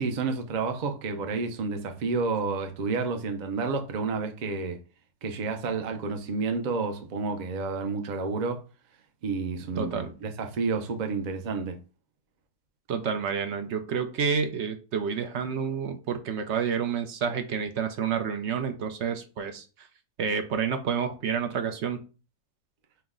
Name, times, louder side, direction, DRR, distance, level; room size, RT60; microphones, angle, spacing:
voice 1, 0.0-4.8 5.2-8.6 9.2-11.8, right 4 dB, 80° right, 0.4 m, -30 dB
voice 2, 9.8-10.1 12.9-19.6 20.2-22.0, right 6 dB, 60° right, 0.7 m, -29 dB
5.5 x 2.1 x 3.6 m
omnidirectional pair, 1.6 m